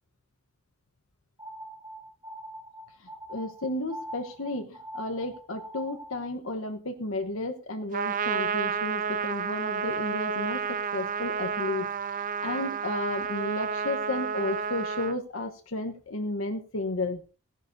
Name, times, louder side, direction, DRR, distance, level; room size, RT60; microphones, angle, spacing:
sound 1, 1.4-6.3, right 1 dB, 15° right, 1.5 m, -43 dB
voice 1, 3.0-10.6 10.9-17.2, left 2 dB, 85° left, 5 dB, 1.2 m, -33 dB
Trumpet, 7.9-15.2, right 6 dB, 40° right, 0.5 m, -31 dB
17.0 x 11.5 x 2.7 m, 0.34 s
head